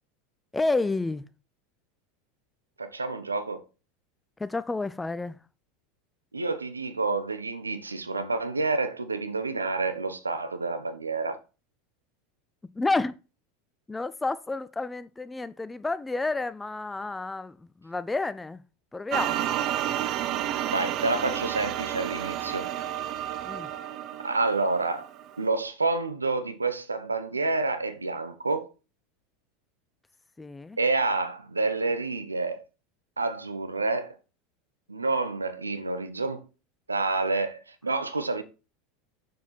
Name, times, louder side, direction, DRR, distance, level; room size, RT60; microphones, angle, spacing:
voice 1, 0.5-1.3 4.4-5.4 12.8-13.2 13.9-18.6 18.9-19.4 23.4-23.7 30.4-30.8, left 3 dB, 10° left, 0.6 m, -30 dB
voice 2, 2.8-3.6 6.3-11.4 20.7-22.7 24.2-25.1 25.4-28.7 30.8-32.6 33.2-34.2 34.9-36.4 36.9-38.4, right 3 dB, 90° right, 1.0 m, -28 dB
sound 1, 19.1-25.4, right 11 dB, 45° right, 0.7 m, -31 dB
7.1 x 6.6 x 4.1 m
figure-of-eight pair, 80°, 0 cm